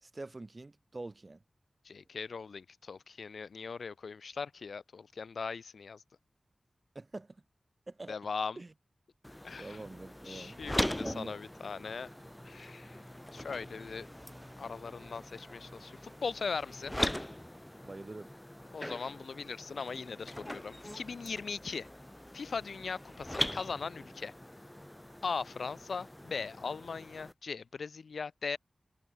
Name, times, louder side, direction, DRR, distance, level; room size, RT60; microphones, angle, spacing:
voice 1, 0.0-1.4 6.9-7.4 7.9-8.2 8.6-8.7 9.6-10.6 11.0-11.4 17.8-18.3, right 2 dB, 35° right, 0.5 m, -45 dB
voice 2, 1.8-6.0 8.1-8.6 9.4-9.8 10.3-12.1 12.4-13.0 13.3-14.1 14.6-16.9 18.7-21.9 22.3-24.3 25.2-28.6, left 5 dB, 90° left, 0.6 m, -39 dB
sound 1, 9.2-27.3, left 1 dB, 10° left, 0.8 m, -41 dB
sound 2, 10.6-16.1, right 1 dB, 20° right, 6.4 m, -61 dB
wide cardioid pair, 105°, 0 cm